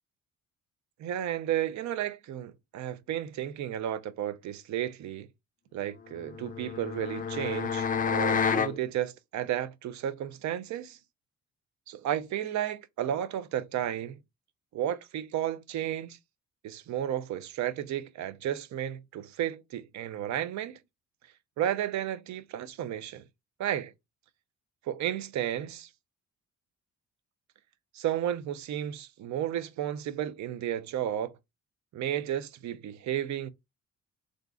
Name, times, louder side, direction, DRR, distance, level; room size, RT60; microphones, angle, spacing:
voice 1, 1.0-5.3 5.7-11.0 11.9-14.2 14.7-16.2 16.6-20.8 21.6-23.2 23.6-23.9 24.9-25.9 27.9-31.3 31.9-33.5, right 11 dB, 70° right, 0.6 m, -33 dB
sound 1, 6.2-8.8, left 6 dB, 30° left, 0.3 m, -29 dB
3.7 x 2.5 x 2.3 m
cardioid pair, 90°, 30 cm